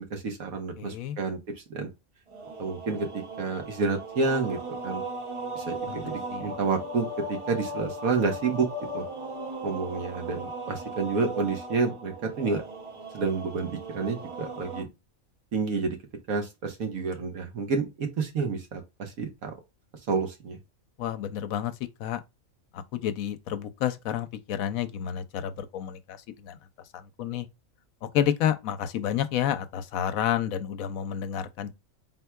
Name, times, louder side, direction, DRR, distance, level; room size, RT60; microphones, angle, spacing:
voice 1, 0.0-1.4 1.7-1.9 2.6-4.6 4.8-5.0 5.5-8.7 8.9-9.1 9.6-12.6 13.1-14.9 15.5-16.0 16.3-19.5 20.1-20.6, right 4 dB, 85° right, 1.6 m, -29 dB
voice 2, 0.8-1.2 5.9-6.5 21.0-21.7 22.0-22.2 22.7-26.2 26.4-26.6 26.9-27.5 28.1-31.7, left 10 dB, 90° left, 1.1 m, -30 dB
sound 1, 2.3-14.8, right 1 dB, 35° right, 0.5 m, -37 dB
4.5 x 4.1 x 2.2 m
omnidirectional pair, 1.4 m